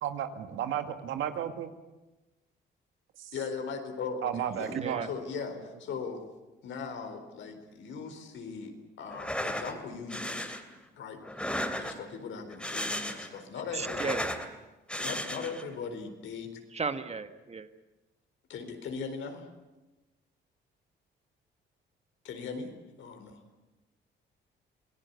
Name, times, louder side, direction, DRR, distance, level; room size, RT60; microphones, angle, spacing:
voice 1, 0.0-1.7 3.2-3.3 4.2-5.1, right 9 dB, 80° right, 8 dB, 2.0 m, -33 dB
voice 2, 3.3-4.7 5.0-6.2 6.6-10.6 10.9-14.2 15.0-16.6 18.5-19.5 22.2-22.7 23.0-23.4, left 5 dB, 75° left, 6 dB, 4.3 m, -39 dB
voice 3, 4.7-5.1 13.7-14.3 16.7-17.7, right 4 dB, 30° right, 10 dB, 1.6 m, -35 dB
sound 1, 9.1-9.7 10.1-10.6 11.2-12.1 12.5-13.4 13.7-14.5 14.9-15.6, left 1 dB, 5° left, 2.8 m, -34 dB
26.5 x 18.5 x 8.3 m, 1.1 s
cardioid pair, 90°, 20 cm